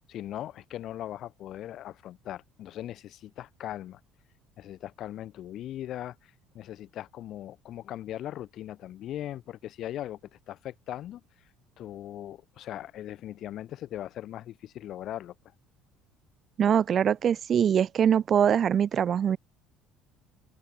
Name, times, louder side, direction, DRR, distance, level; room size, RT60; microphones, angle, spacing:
voice 1, 0.0-4.0 4.6-10.2 10.5-11.2 11.8-15.3, left 12 dB, 50° left, 6.1 m, -39 dB
voice 2, 16.6-19.4, right 8 dB, 35° right, 0.4 m, -23 dB
open air
cardioid pair, 135°, 0 cm